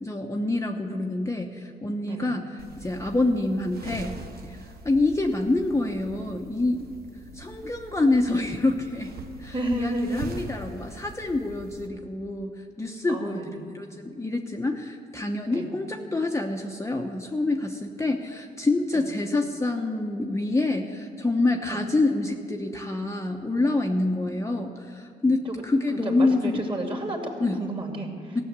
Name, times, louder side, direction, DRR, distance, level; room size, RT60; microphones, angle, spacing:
voice 1, 0.0-4.6 4.8-6.9 7.3-9.1 9.4-26.6 27.4-27.6 28.3-28.4, left 2 dB, 15° left, 2 dB, 0.9 m, -27 dB
voice 2, 2.1-2.4 9.5-10.4 13.1-13.7 15.5-15.7 18.9-19.0 21.7-21.8 25.4-25.5 25.9-28.4, right 1 dB, 30° right, 2 dB, 2.5 m, -31 dB
sound 1, 2.6-11.9, right 2 dB, 65° right, 1.2 m, -43 dB
15.5 x 6.5 x 8.0 m, 2.3 s
cardioid pair, 70°, 17 cm